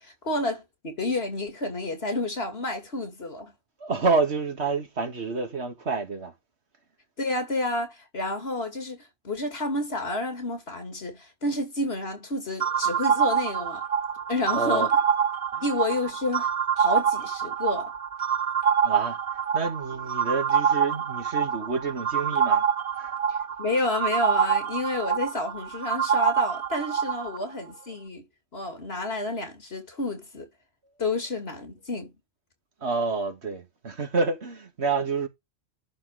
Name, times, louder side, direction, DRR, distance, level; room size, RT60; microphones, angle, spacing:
voice 1, 0.0-3.5 7.2-13.8 14.3-14.9 15.6-16.5 16.8-17.9 23.3-28.2 28.5-30.5 31.0-32.1, left 2 dB, 70° left, 2.8 m, -30 dB
voice 2, 3.8-6.3 14.5-14.9 15.5-15.6 18.8-19.2 19.5-22.6 23.0-23.1 32.8-35.3, right 4 dB, 85° right, 2.2 m, -28 dB
sound 1, 12.6-27.4, right 7 dB, 45° right, 0.5 m, -26 dB
11.0 x 4.2 x 4.7 m
omnidirectional pair, 1.1 m